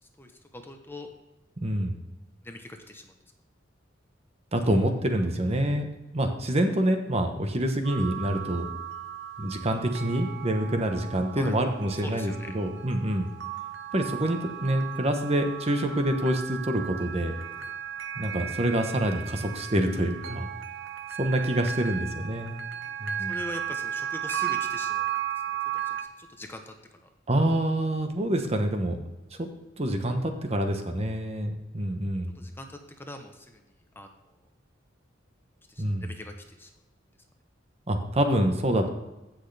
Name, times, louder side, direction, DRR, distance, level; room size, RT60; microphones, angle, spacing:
voice 1, 0.2-1.1 2.4-3.2 11.3-12.6 17.6-17.7 22.6-25.1 25.5-27.1 32.3-33.6 33.9-34.5 35.7-36.7, left 1 dB, 10° left, 4 dB, 0.9 m, -43 dB
voice 2, 1.6-2.0 4.5-5.9 6.1-8.7 9.4-13.3 13.9-17.4 18.2-20.5 21.2-22.6 23.0-23.4 27.3-29.1 29.4-29.5 29.8-32.3 35.8-36.1 37.9-38.9, right 1 dB, 35° right, 5 dB, 1.1 m, -26 dB
sound 1, 7.8-26.0, right 9 dB, 70° right, 1.0 m, -35 dB
16.0 x 6.4 x 3.4 m, 1.0 s
head